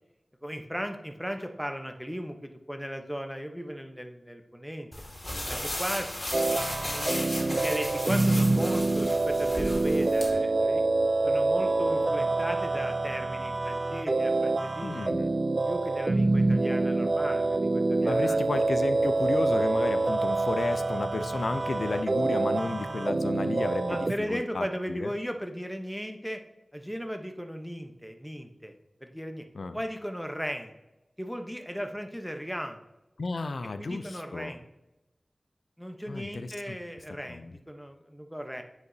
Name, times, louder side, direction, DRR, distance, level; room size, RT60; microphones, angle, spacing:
voice 1, 0.4-4.9 5.5-6.1 6.5-10.8 11.2-15.1 15.7-18.4 18.8-18.9 23.9-26.4 26.7-28.7 29.0-29.4 29.7-30.7 31.2-32.8 33.8-34.7 35.8-38.6, equal, ahead, 5 dB, 0.8 m, -36 dB
sound 1, 4.9-10.3, left 1 dB, 35° left, 2.0 m, -35 dB
sound 2, 6.3-24.1, right 2 dB, 60° right, 0.3 m, -26 dB
voice 2, 14.8-15.4 18.1-25.1 29.5-29.8 33.2-34.5 36.1-36.8 37.3-37.5, left 3 dB, 85° left, 11 dB, 0.4 m, -33 dB
9.3 x 4.8 x 2.7 m, 0.96 s
wide cardioid pair, 50°, 0 cm